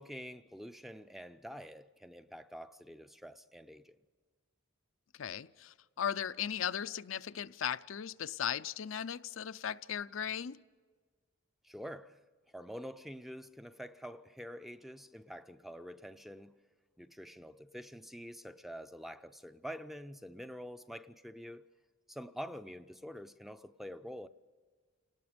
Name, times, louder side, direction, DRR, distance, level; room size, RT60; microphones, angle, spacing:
voice 1, 0.0-4.0 11.6-12.2 12.5-16.5 17.0-21.7 22.1-24.3, equal, ahead, 0.5 m, -47 dB
voice 2, 5.2-10.6, left 8 dB, 75° left, 0.5 m, -37 dB
29.5 x 19.0 x 5.1 m
head